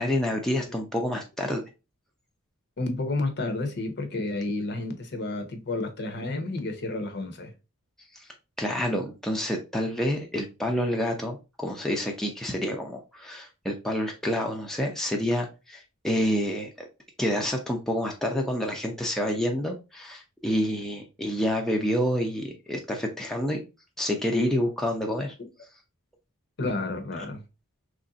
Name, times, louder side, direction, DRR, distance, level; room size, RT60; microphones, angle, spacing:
voice 1, 0.0-1.7 8.6-16.9 17.2-23.6 24.0-25.3, equal, ahead, 0.5 m, -28 dB
voice 2, 2.8-7.5 25.4-25.5 26.6-27.4, left 2 dB, 50° left, 0.7 m, -31 dB
3.1 x 2.5 x 3.8 m
head